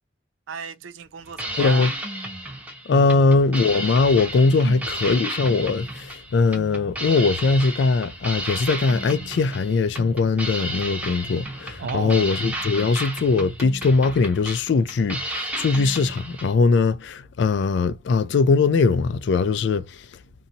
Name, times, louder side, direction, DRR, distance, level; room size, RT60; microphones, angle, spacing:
voice 1, 0.5-1.9 2.9-3.1 4.5-4.9 11.8-12.3, right 4 dB, 85° right, 0.4 m, -32 dB
sound 1, 1.2-16.5, right 1 dB, 10° right, 0.7 m, -33 dB
voice 2, 1.6-1.9 2.9-19.9, left 4 dB, 65° left, 0.3 m, -20 dB
2.7 x 2.7 x 2.6 m
head